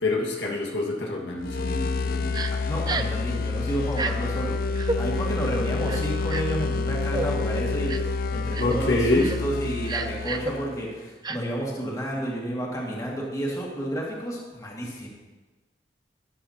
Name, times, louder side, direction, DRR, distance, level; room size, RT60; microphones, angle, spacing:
voice 1, 0.0-2.4 8.6-9.3, left 2 dB, 85° left, -2 dB, 1.8 m, -26 dB
sound 1, 1.4-10.9, left 4 dB, 50° left, 0.4 m, -28 dB
Crying sobbing, 2.3-2.5 2.9-3.2 3.9-4.1 4.8-5.0 5.9-6.6 7.1-7.3 7.9-8.1 8.5-8.8 9.2-9.4 9.9-10.5 11.2-11.4, right 3 dB, 25° right, 0.4 m, -30 dB
voice 2, 2.7-4.6 4.9-15.1, right 1 dB, 20° left, -3 dB, 2.0 m, -31 dB
12.5 x 11.0 x 2.9 m, 1.2 s
head